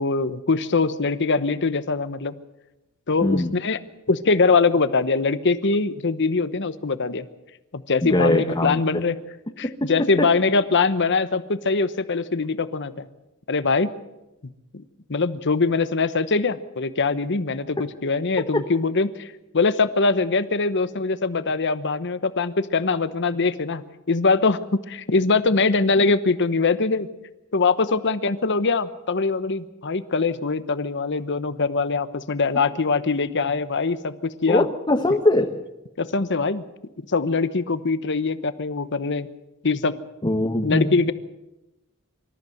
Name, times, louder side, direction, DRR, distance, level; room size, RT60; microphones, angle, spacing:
voice 1, 0.0-2.3 3.1-3.8 4.1-7.3 7.7-9.1 9.6-13.1 13.5-13.9 14.7-14.8 15.1-24.6 24.9-27.1 27.5-34.6 36.0-36.6 37.1-39.3 39.6-40.0 40.6-41.1, left 4 dB, 55° left, 13 dB, 1.0 m, -22 dB
voice 2, 3.2-3.5 8.0-8.8 10.2-10.3 18.5-18.6 34.5-35.5 40.2-41.0, left 1 dB, 20° left, 3 dB, 1.2 m, -21 dB
25.0 x 14.0 x 7.9 m, 0.98 s
head